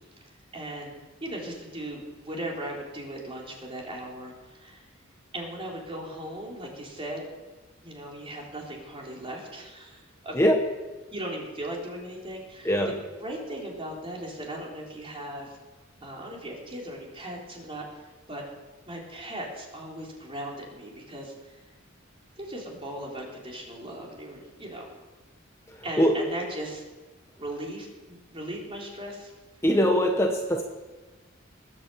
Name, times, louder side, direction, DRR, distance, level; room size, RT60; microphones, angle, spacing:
voice 1, 0.5-4.9 5.3-7.3 7.8-10.5 11.1-12.8 13.2-15.6 16.0-18.4 18.9-21.6 22.4-24.8 25.8-26.8 27.4-29.3, right 1 dB, 30° right, -1 dB, 3.9 m, -38 dB
voice 2, 12.6-13.0 25.7-26.2 29.6-30.6, equal, 15° left, 2 dB, 1.1 m, -22 dB
20.0 x 9.0 x 7.9 m, 1.2 s
head